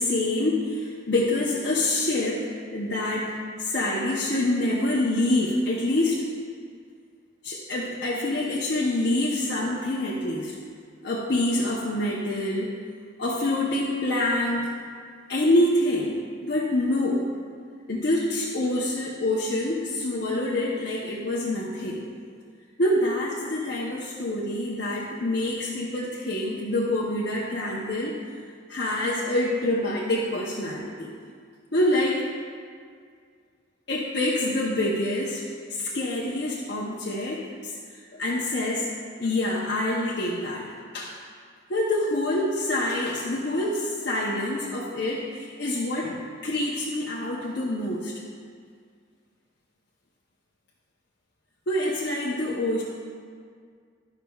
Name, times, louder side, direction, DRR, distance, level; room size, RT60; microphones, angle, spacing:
voice 1, 0.0-2.5 2.7-3.3 3.6-6.3 7.4-10.6 11.0-12.7 13.2-14.7 15.3-17.2 17.9-22.0 22.8-28.2 28.7-31.1 31.7-32.3 33.9-35.4 35.7-37.7 38.0-38.9 39.2-41.1 41.7-48.1 51.7-52.8, left 1 dB, 60° left, -5 dB, 0.7 m, -26 dB
12.0 x 5.7 x 2.3 m, 2.1 s
head